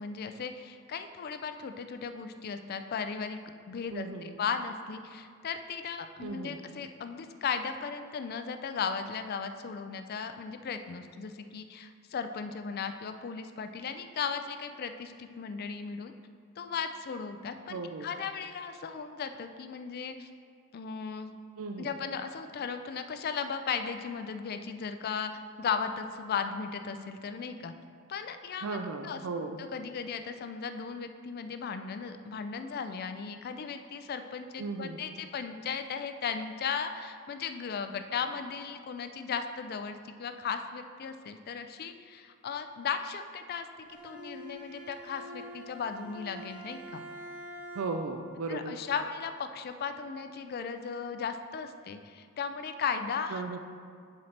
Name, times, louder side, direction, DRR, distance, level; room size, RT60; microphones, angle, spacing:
voice 1, 0.0-3.4 3.7-16.1 16.6-20.3 20.7-21.4 21.8-25.3 25.6-27.7 28.1-28.8 29.0-43.7 44.0-47.0 48.5-53.4, left 6 dB, 45° left, 8 dB, 0.4 m, -36 dB
voice 2, 3.9-4.3 6.2-6.6 17.7-18.1 21.6-21.9 28.6-29.6 34.6-35.0 47.8-48.8 53.3-53.6, right 3 dB, 70° right, 4 dB, 0.4 m, -36 dB
Bowed string instrument, 43.9-48.2, equal, 5° right, 0.7 m, -46 dB
11.0 x 4.2 x 3.2 m, 2.2 s
head